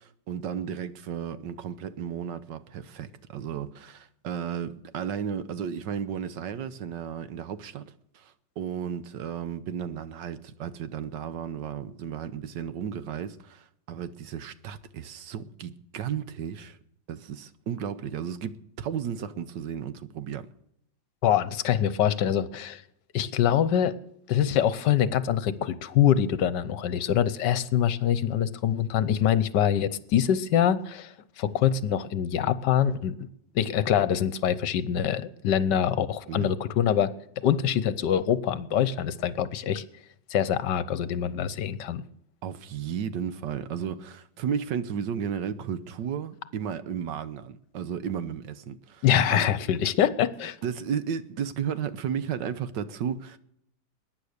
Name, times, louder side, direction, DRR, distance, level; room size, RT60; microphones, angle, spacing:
voice 1, 0.0-16.8 17.1-20.5 36.3-36.5 42.4-49.5 50.6-53.4, right 8 dB, 75° right, 1.5 m, -34 dB
voice 2, 21.2-22.8 23.1-23.9 24.3-33.2 33.5-37.1 37.4-39.8 40.3-42.0 49.0-50.6, left 9 dB, 70° left, 1.4 m, -24 dB
21.5 x 9.9 x 6.6 m
omnidirectional pair, 2.0 m